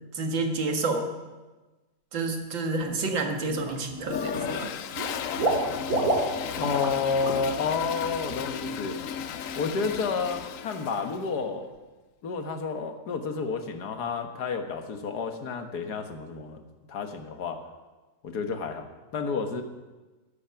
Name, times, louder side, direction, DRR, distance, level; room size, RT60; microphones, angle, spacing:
voice 1, 0.1-1.1 2.1-4.7, right 3 dB, 70° right, 4 dB, 2.4 m, -29 dB
Water / Liquid, 2.8-3.1 3.5-4.1 4.4-7.0 7.2-7.5 7.8-7.9, right 2 dB, 45° right, 2.9 m, -29 dB
Toilet flush, 4.0-11.3, left 7 dB, 75° left, 0.7 m, -35 dB
voice 2, 6.6-9.0 9.6-11.7 12.2-16.6 16.9-17.6 18.2-19.6, left 5 dB, 55° left, 6 dB, 1.7 m, -30 dB
14.0 x 13.0 x 5.8 m, 1.2 s
omnidirectional pair, 2.2 m